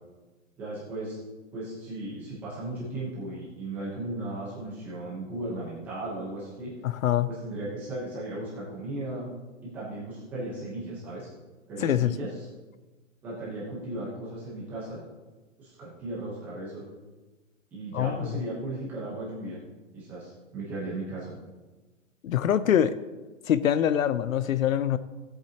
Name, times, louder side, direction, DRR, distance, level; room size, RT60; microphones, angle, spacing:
voice 1, 0.6-1.2 1.5-6.7 7.3-9.3 9.6-11.3 11.7-12.5 13.2-15.0 15.6-16.8 17.7-19.6 19.9-21.3, right 2 dB, 5° right, -8 dB, 1.0 m, -36 dB
voice 2, 6.8-7.3 11.8-12.1 17.9-18.3 22.2-22.9 23.5-25.0, left 10 dB, 90° left, 15 dB, 0.7 m, -24 dB
16.0 x 8.2 x 2.9 m, 1.2 s
hypercardioid pair, 180°, 39 cm